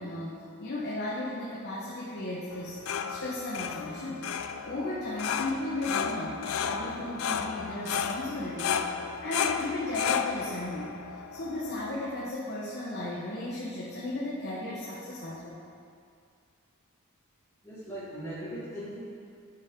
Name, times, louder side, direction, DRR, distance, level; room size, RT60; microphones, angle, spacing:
voice 1, 0.0-2.8 3.1-4.2 4.6-8.9 9.2-15.6, left 1 dB, 50° left, -7 dB, 1.3 m, -35 dB
sound 1, 2.5-12.2, left 7 dB, 70° left, 0.4 m, -33 dB
voice 2, 17.6-19.0, right 1 dB, 15° left, -11 dB, 2.4 m, -39 dB
12.0 x 6.9 x 3.8 m, 2.4 s
head